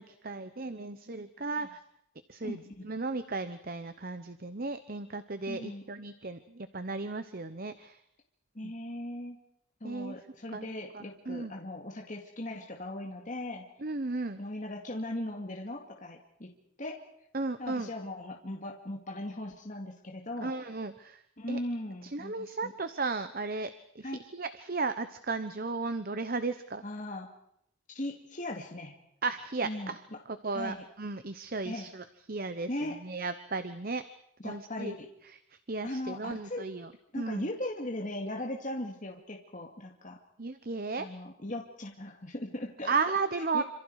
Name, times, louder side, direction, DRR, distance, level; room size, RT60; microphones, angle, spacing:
voice 1, 0.0-1.8 2.3-8.0 8.6-8.7 9.8-10.1 10.5-10.7 10.9-11.5 13.8-14.4 17.3-17.9 20.4-21.2 21.5-21.6 22.0-26.8 29.2-30.0 30.3-34.0 34.4-34.9 35.7-37.5 40.4-41.1 42.8-43.6, right 3 dB, 45° right, 11 dB, 1.0 m, -35 dB
voice 2, 2.4-2.9 5.5-5.8 8.5-9.4 9.8-13.7 14.4-16.5 16.8-17.0 17.6-20.5 21.4-22.7 24.0-24.2 26.8-27.3 27.9-29.0 29.6-30.2 30.5-30.8 31.6-31.9 32.7-33.0 34.4-35.1 35.8-36.7 37.1-40.2 41.0-43.0 43.5-43.6, left 1 dB, 35° left, 1 dB, 2.3 m, -38 dB
27.0 x 27.0 x 4.9 m, 0.71 s
head